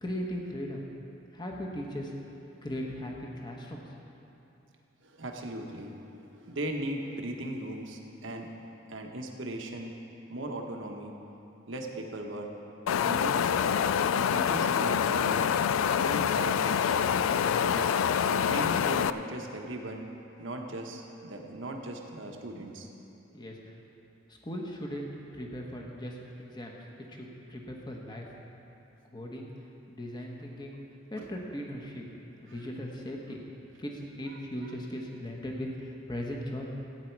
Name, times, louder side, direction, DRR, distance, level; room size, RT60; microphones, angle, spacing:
voice 1, 0.0-0.8 1.3-2.1 2.6-3.8 23.3-23.8 24.3-28.3 29.1-29.5 29.9-30.8 31.1-32.0 32.4-33.4 33.8-36.7, equal, 20° left, 0 dB, 1.1 m, -38 dB
voice 2, 5.0-8.5 8.9-9.9 10.3-11.1 11.7-12.5 13.0-13.8 14.1-15.5 15.9-17.1 17.5-17.9 18.3-20.1 20.4-22.9 31.2-31.3 32.5-32.6 34.2-34.7, right 1 dB, 70° right, 2 dB, 1.1 m, -38 dB
Wind, 12.9-19.1, left 8 dB, 80° left, 0.3 m, -26 dB
15.0 x 9.2 x 4.6 m, 2.9 s
head